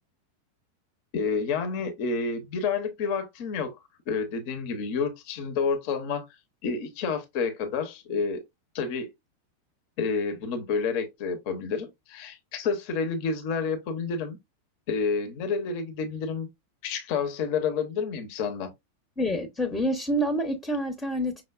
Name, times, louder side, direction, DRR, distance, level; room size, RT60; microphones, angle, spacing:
voice 1, 1.1-3.8 4.1-6.2 6.6-8.4 8.7-9.1 10.0-14.4 14.9-16.5 16.8-18.7, left 5 dB, 45° left, 0.7 m, -29 dB
voice 2, 19.2-21.4, equal, 10° left, 0.7 m, -27 dB
5.9 x 2.0 x 2.3 m
figure-of-eight pair, 90°, 0 cm